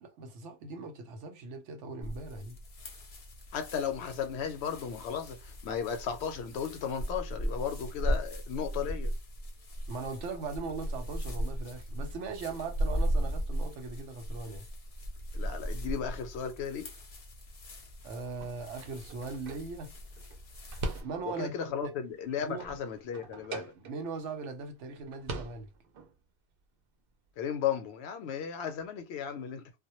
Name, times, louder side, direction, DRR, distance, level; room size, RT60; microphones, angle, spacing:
voice 1, 0.0-2.6 9.9-14.7 18.0-19.9 21.0-22.0 22.4-22.7 23.5-25.7, right 4 dB, 85° right, 1.0 m, -40 dB
sound 1, 2.0-21.0, equal, 45° left, 0.5 m, -37 dB
voice 2, 3.5-9.1 15.3-16.9 21.2-23.7 27.4-29.7, left 7 dB, 70° left, 0.8 m, -35 dB
sound 2, 18.3-21.6 22.0-24.3 24.6-24.7 25.0-26.1, right 3 dB, 60° right, 0.7 m, -42 dB
2.1 x 2.0 x 2.9 m
omnidirectional pair, 1.2 m